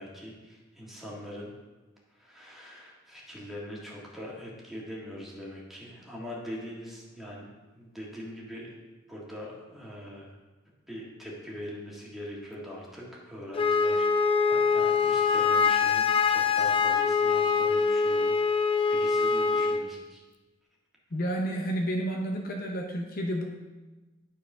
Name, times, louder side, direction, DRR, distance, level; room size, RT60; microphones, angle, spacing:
voice 1, 0.0-1.5 2.1-7.5 7.7-8.7 9.1-10.3 10.9-18.3 18.9-20.2, equal, ahead, -5 dB, 1.9 m, -42 dB
Wind instrument woodwind instrument, 13.5-19.8, left 5 dB, 25° left, 0.4 m, -24 dB
voice 2, 21.1-23.4, right 1 dB, 50° left, 2 dB, 0.8 m, -30 dB
9.9 x 4.6 x 5.5 m, 1.2 s
head